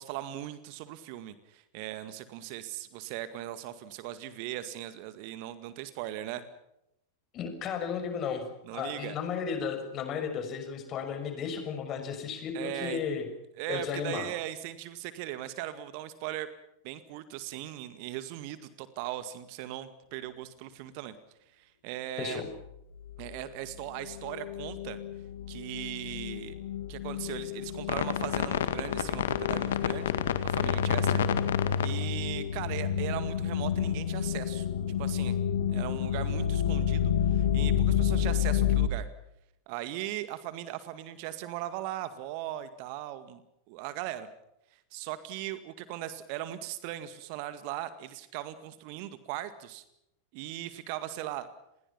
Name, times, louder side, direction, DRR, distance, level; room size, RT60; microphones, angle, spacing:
voice 1, 0.0-6.4 8.6-9.2 12.5-13.0 13.6-16.5 16.8-21.1 21.5-22.4 23.2-25.0 25.5-26.6 26.9-30.1 30.4-31.2 31.8-34.7 35.0-35.4 35.7-39.1 39.7-43.4 43.7-44.3 44.7-49.8 50.3-51.5, right 13 dB, 45° right, 12 dB, 2.0 m, -39 dB
voice 2, 7.3-8.4 8.7-13.3 13.7-14.3 22.2-22.5, left 6 dB, 30° left, 7 dB, 6.3 m, -34 dB
sound 1, 22.6-22.7 23.0-23.4 23.7-38.9, left 9 dB, 60° left, 1.9 m, -29 dB
30.0 x 21.5 x 5.8 m, 0.81 s
figure-of-eight pair, 90°, 0 cm